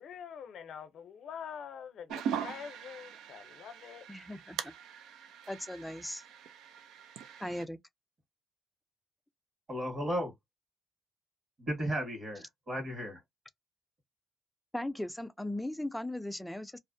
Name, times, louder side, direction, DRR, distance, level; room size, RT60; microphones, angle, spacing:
voice 1, 0.0-4.0, left 7 dB, 70° left, 0.6 m, -45 dB
sound 1, 2.1-7.6, right 8 dB, 85° right, 0.4 m, -41 dB
voice 2, 4.1-4.7 5.5-6.2 7.4-7.8 14.7-16.8, left 1 dB, 5° left, 0.3 m, -38 dB
voice 3, 9.7-10.3 11.6-13.2, equal, 45° right, 1.3 m, -34 dB
2.5 x 2.0 x 2.5 m
cardioid pair, 90°, 0 cm